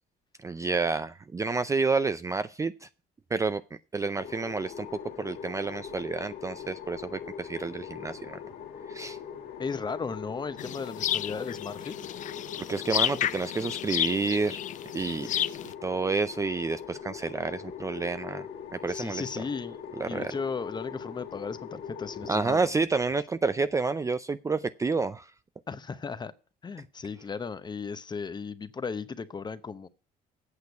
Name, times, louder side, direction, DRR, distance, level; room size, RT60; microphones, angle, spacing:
voice 1, 0.4-2.9 3.3-3.6 3.9-4.9 5.2-8.4 8.9-9.2 12.7-14.6 14.9-15.3 15.6-18.5 18.7-19.2 20.0-20.3 22.3-25.3, right 4 dB, 20° right, 0.4 m, -29 dB
sound 1, 4.2-22.6, left 8 dB, 70° left, 1.8 m, -41 dB
voice 2, 9.6-11.9 18.9-19.8 20.1-22.7 25.7-26.3 26.6-29.9, left 5 dB, 25° left, 0.8 m, -36 dB
sound 2, 10.6-15.7, left 11 dB, 50° left, 0.4 m, -31 dB
8.4 x 6.5 x 7.9 m
cardioid pair, 110°, 17 cm